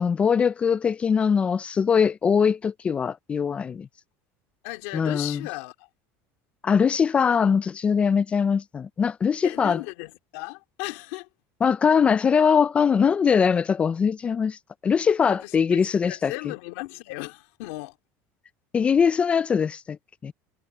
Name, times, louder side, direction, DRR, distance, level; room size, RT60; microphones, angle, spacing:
voice 1, 0.0-3.9 4.9-5.5 6.6-9.8 11.6-14.6 14.8-16.3 18.7-20.0 20.2-20.3, left 6 dB, 15° left, 0.3 m, -22 dB
voice 2, 4.6-5.9 9.4-11.3 15.3-18.0, left 23 dB, 70° left, 2.5 m, -36 dB
cardioid pair, 165°, 7 cm